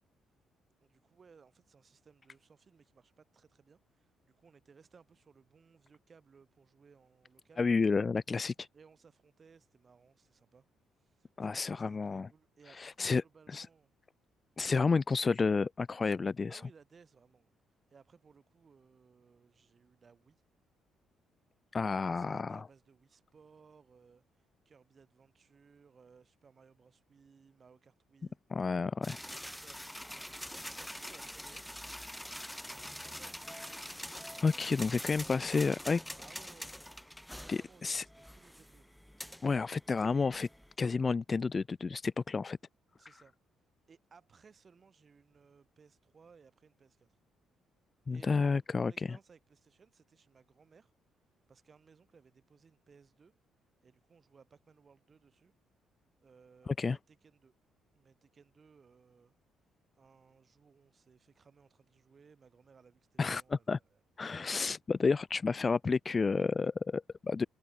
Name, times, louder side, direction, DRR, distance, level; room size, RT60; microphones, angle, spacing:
voice 1, 0.8-7.8 8.7-10.6 11.0-13.9 16.5-17.5 17.9-20.4 21.8-28.4 29.2-30.4 30.7-31.8 32.7-33.9 34.3-36.8 37.4-39.0 43.0-43.3 43.9-47.1 48.1-50.9 51.5-53.3 53.8-55.5 56.2-57.5 57.9-59.3 60.0-64.5, right 5 dB, 25° right, 6.5 m, -62 dB
voice 2, 7.6-8.7 11.4-12.3 12.8-13.2 13.5-13.7 14.6-16.6 21.7-22.6 28.5-29.2 34.4-36.0 37.5-38.0 39.4-40.5 40.8-42.6 48.1-49.2 56.7-57.0 63.2-63.8 64.2-67.5, left 4 dB, 20° left, 0.4 m, -31 dB
sound 1, 29.0-40.7, equal, ahead, 1.3 m, -45 dB
cardioid pair, 175°, 0 cm